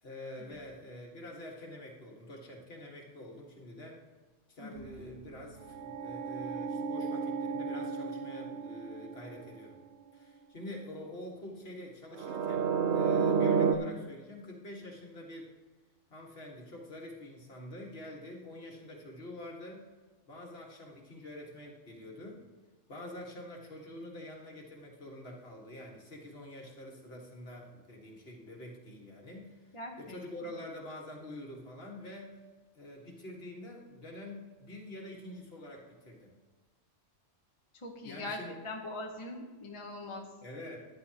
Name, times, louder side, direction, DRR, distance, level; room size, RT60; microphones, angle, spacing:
voice 1, 0.0-4.0 4.5-9.8 10.1-15.5 16.1-19.8 20.3-22.4 22.9-32.4 32.7-36.3 38.0-38.6 40.4-40.8, left 1 dB, 55° left, -1 dB, 1.9 m, -46 dB
voice 2, 4.6-4.9 29.7-30.2 37.8-38.4 38.6-40.3, left 2 dB, 30° left, 1 dB, 0.9 m, -42 dB
sound 1, 4.8-9.6 12.2-13.8, right 6 dB, 65° right, 0.9 m, -31 dB
13.5 x 10.5 x 2.9 m, 1.3 s
omnidirectional pair, 1.3 m